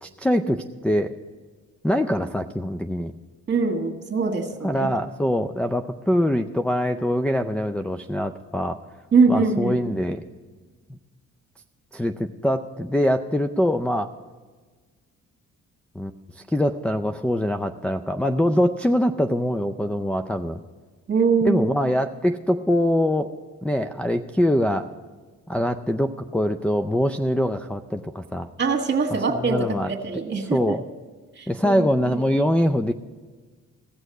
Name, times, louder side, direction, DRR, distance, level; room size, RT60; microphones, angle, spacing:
voice 1, 0.0-1.1 1.8-3.1 4.6-8.8 9.3-10.2 10.9-11.0 11.9-14.1 16.0-20.6 21.4-23.3 23.6-24.9 25.5-28.5 29.4-29.9 30.4-30.8 31.5-32.9, equal, 5° left, 3 dB, 0.4 m, -23 dB
voice 2, 3.5-4.9 9.1-9.8 21.1-21.7 28.6-30.8 31.4-32.2, right 4 dB, 35° right, 4 dB, 1.7 m, -23 dB
15.5 x 6.3 x 7.9 m, 1.4 s
cardioid pair, 90°, 30 cm